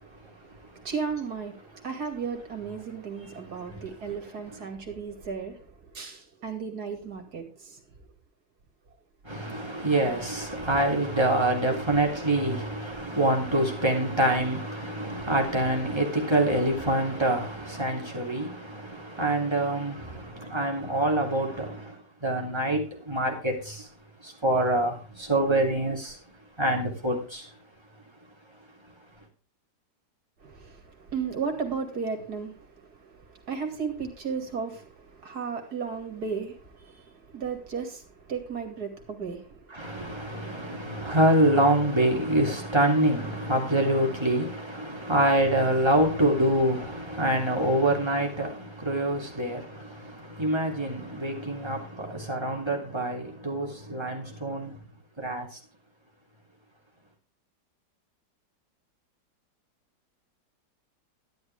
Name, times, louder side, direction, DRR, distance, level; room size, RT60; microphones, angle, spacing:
voice 1, 0.0-7.8 30.4-41.1, right 5 dB, 60° right, 3.0 m, -35 dB
voice 2, 9.3-18.5 19.2-19.9 20.5-21.7 22.2-23.5 24.4-24.9 25.3-26.0 26.6-27.2 39.8-48.5 48.8-49.6 50.4-51.8 52.3-54.7 55.2-55.4, right 1 dB, 15° right, 3.2 m, -25 dB
12.5 x 11.0 x 3.6 m
omnidirectional pair, 1.9 m